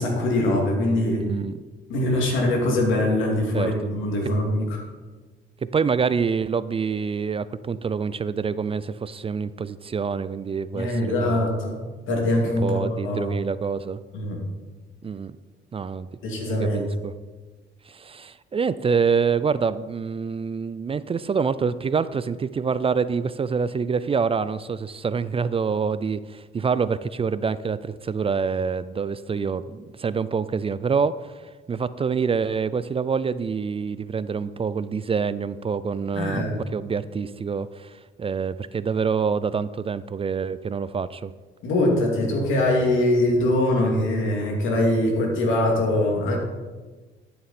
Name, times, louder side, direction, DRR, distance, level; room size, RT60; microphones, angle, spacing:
voice 1, 0.0-1.3 1.9-4.7 10.7-11.8 12.1-13.3 14.1-14.4 16.2-16.9 36.1-36.6 41.6-46.4, left 1 dB, 85° left, 0 dB, 2.4 m, -23 dB
voice 2, 1.2-1.6 3.5-3.7 5.7-11.5 12.6-14.0 15.0-15.4 15.7-16.1 16.6-17.1 17.9-31.4 31.7-41.3, right 5 dB, 30° right, 15 dB, 0.4 m, -26 dB
12.5 x 6.9 x 4.2 m, 1.3 s
cardioid pair, 90°, 20 cm